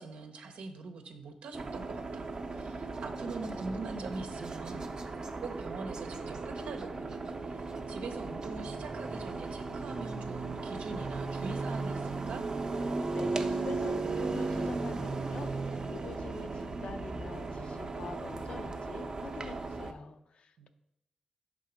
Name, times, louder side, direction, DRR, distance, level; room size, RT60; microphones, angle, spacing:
voice 1, 0.0-4.9 5.4-12.4 20.6-20.7, right 3 dB, 85° right, 6 dB, 0.7 m, -43 dB
sound 1, 1.5-19.9, right 3 dB, 40° right, 0.5 m, -36 dB
voice 2, 13.1-20.7, left 5 dB, 65° left, 9 dB, 0.5 m, -45 dB
5.7 x 3.6 x 5.0 m, 0.82 s
cardioid pair, 85°, 2 cm